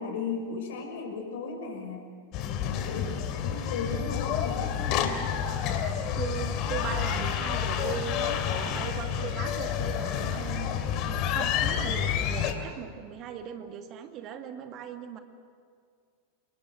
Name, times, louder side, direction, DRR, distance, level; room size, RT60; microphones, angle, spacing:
voice 1, 0.0-2.0 2.4-5.2, left 4 dB, 55° left, 3 dB, 6.2 m, -36 dB
sound 1, 2.3-12.5, left 8 dB, 40° left, 2.5 m, -29 dB
voice 2, 6.2-15.2, right 9 dB, 35° right, 6 dB, 2.0 m, -39 dB
28.5 x 21.5 x 8.2 m, 2.1 s
figure-of-eight pair, 90°, 0 cm